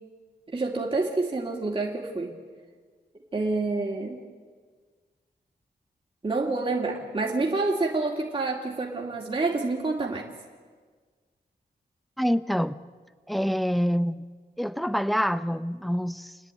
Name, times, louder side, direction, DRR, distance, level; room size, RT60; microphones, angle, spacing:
voice 1, 0.5-2.3 3.3-4.2 6.2-10.3, right 3 dB, 30° right, -2 dB, 2.3 m, -28 dB
voice 2, 12.2-12.8 13.3-14.2 14.6-16.4, equal, ahead, 15 dB, 0.7 m, -26 dB
28.5 x 10.0 x 9.2 m, 1.5 s
wide cardioid pair, 95°, 18 cm